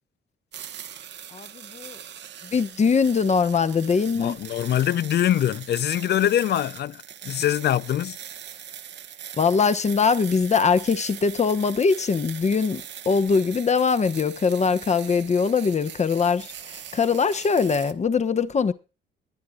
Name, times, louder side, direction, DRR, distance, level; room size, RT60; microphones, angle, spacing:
bengal flame burning, 0.5-17.9, right 9 dB, 65° right, 1.0 m, -41 dB
voice 1, 1.3-2.0 2.4-4.4 9.4-18.7, left 5 dB, 35° left, 1.1 m, -22 dB
voice 2, 4.1-8.2, left 11 dB, 55° left, 0.5 m, -23 dB
22.5 x 9.6 x 2.4 m
cardioid pair, 90°, 20 cm